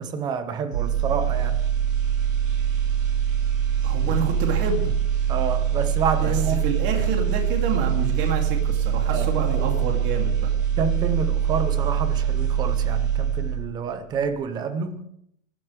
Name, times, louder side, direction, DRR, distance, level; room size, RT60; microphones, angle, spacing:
voice 1, 0.0-1.6 5.3-6.6 9.1-9.3 10.8-15.0, right 6 dB, 10° right, 0.5 m, -28 dB
sound 1, 0.7-13.8 14.2-14.4, right 9 dB, 85° right, 7.0 m, -23 dB
voice 2, 3.8-4.9 6.2-10.5, right 4 dB, 30° right, 2.4 m, -28 dB
22.5 x 12.0 x 3.3 m
supercardioid pair, 165°, 39 cm